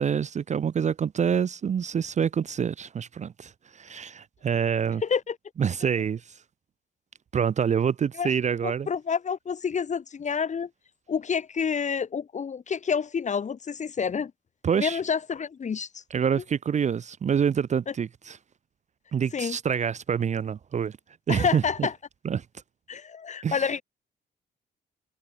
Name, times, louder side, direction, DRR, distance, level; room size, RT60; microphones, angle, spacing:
voice 1, 0.0-5.0 5.6-6.2 7.3-8.9 14.6-15.0 16.1-18.4 19.1-21.0 21.3-21.9 22.2-22.4 23.4-23.7, right 7 dB, 35° right, 0.5 m, -26 dB
voice 2, 5.0-5.4 8.2-8.3 8.6-10.7 11.1-14.3 14.8-16.0 19.3-19.6 21.3-21.9 22.9-23.8, left 6 dB, 35° left, 1.0 m, -28 dB
cardioid pair, 90°, 20 cm